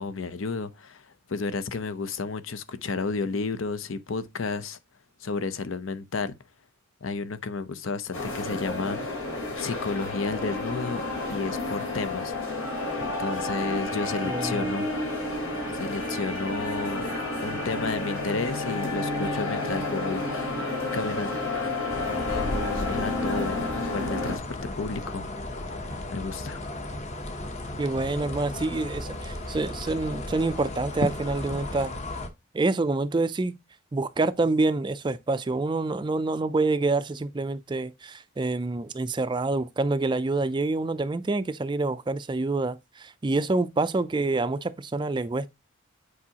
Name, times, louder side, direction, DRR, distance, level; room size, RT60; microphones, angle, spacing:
voice 1, 0.0-4.8 5.2-6.4 7.0-9.0 9.6-12.3 13.0-14.9 15.7-21.3 22.3-25.3 26.1-26.6, left 4 dB, 70° left, 0.7 m, -32 dB
sound 1, 8.1-24.4, left 2 dB, 90° left, 3.7 m, -30 dB
voice 2, 14.3-14.7 27.8-31.9 32.5-33.6 33.9-45.5, right 3 dB, 20° right, 0.3 m, -27 dB
sound 2, 21.9-32.3, left 1 dB, 35° left, 0.8 m, -34 dB
8.4 x 4.7 x 2.8 m
head